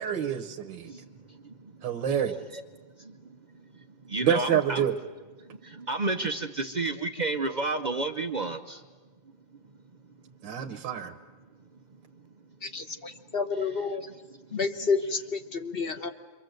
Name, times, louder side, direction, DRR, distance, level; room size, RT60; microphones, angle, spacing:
voice 1, 0.0-0.9 1.8-2.3 4.2-4.9 10.4-11.1, right 9 dB, 75° right, 3 dB, 1.7 m, -27 dB
voice 2, 0.8-1.7 2.0-2.6 3.0-4.8 5.4-8.8 10.4-10.5 12.2-12.3 14.0-14.1 15.9-16.1, right 2 dB, 55° right, 6 dB, 0.4 m, -33 dB
voice 3, 12.6-14.0 14.5-16.1, left 4 dB, 35° left, 7 dB, 1.1 m, -30 dB
27.0 x 24.0 x 7.8 m, 1.4 s
omnidirectional pair, 2.1 m